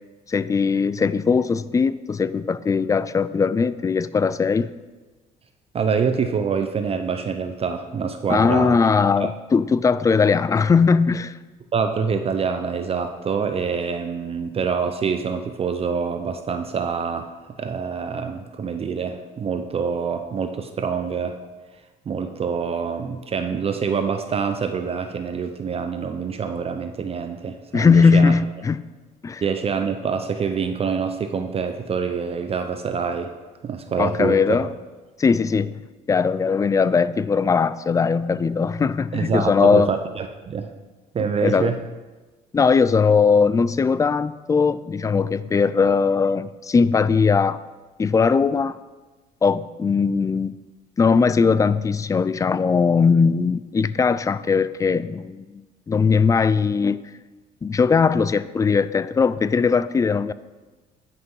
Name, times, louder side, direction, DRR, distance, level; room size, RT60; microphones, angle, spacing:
voice 1, 0.3-4.7 8.3-11.4 27.7-28.9 29.2-29.4 34.0-34.7 35.2-35.7 36.1-39.9 41.4-41.7 42.5-47.6 48.0-48.8 49.4-50.5 51.0-57.0 57.6-60.3, left 5 dB, 20° left, 16 dB, 0.3 m, -19 dB
voice 2, 5.7-8.8 9.2-9.3 11.7-17.3 17.6-21.4 22.1-28.3 29.4-33.3 33.6-34.6 39.1-40.7 41.1-41.8, right 6 dB, 35° right, 7 dB, 0.6 m, -26 dB
10.5 x 5.9 x 5.5 m, 1.2 s
cardioid pair, 110°, 17 cm